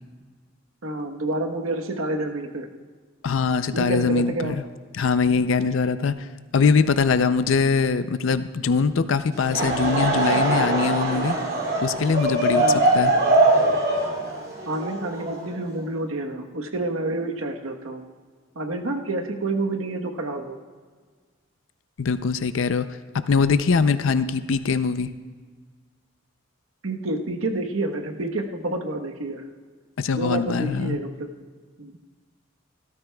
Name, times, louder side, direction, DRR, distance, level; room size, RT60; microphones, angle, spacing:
voice 1, 0.8-2.7 3.7-4.6 12.5-12.8 14.7-18.0 18.5-20.6 26.8-29.4 30.1-31.3 31.8-31.9, right 2 dB, 85° right, 4 dB, 1.1 m, -28 dB
voice 2, 3.2-4.6 4.9-11.4 11.8-13.1 22.0-22.9 23.3-25.1 30.0-31.0, left 5 dB, 70° left, 12 dB, 0.5 m, -22 dB
Laughter / Crowd, 9.3-15.8, right 2 dB, 50° right, 2.6 m, -22 dB
17.5 x 13.5 x 2.3 m, 1.5 s
head